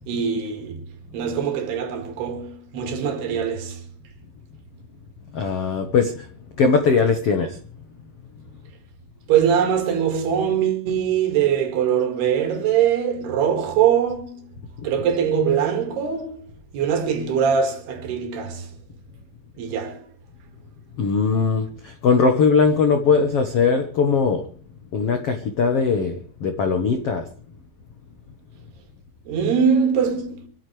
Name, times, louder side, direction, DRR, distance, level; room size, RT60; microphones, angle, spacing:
voice 1, 0.1-3.8 9.3-14.6 14.8-18.7 19.6-20.0 29.3-30.5, right 8 dB, 70° right, 4.1 m, -22 dB
voice 2, 5.3-7.7 14.8-15.1 21.0-24.5 24.9-27.3, left 5 dB, 70° left, 1.4 m, -20 dB
25.0 x 14.0 x 3.4 m
omnidirectional pair, 4.9 m